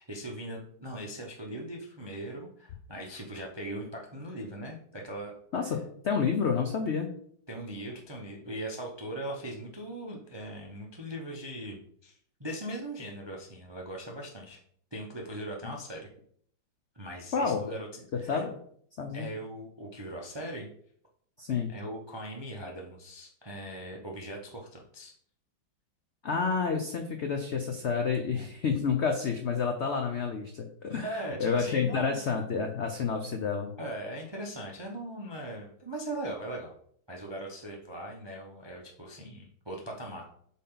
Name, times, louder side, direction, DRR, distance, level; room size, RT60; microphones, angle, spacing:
voice 1, 0.0-5.3 7.5-14.6 14.9-16.1 16.9-18.4 19.1-20.7 21.7-25.1 28.1-28.5 31.0-32.2 33.8-36.7 37.1-40.2, right 1 dB, 40° right, 0 dB, 0.3 m, -40 dB
voice 2, 5.5-7.1 17.3-17.6 18.3-18.5 19.0-19.3 21.4-21.7 26.2-33.7, left 5 dB, 80° left, 4 dB, 0.6 m, -29 dB
8.2 x 3.7 x 3.8 m, 0.63 s
omnidirectional pair, 2.1 m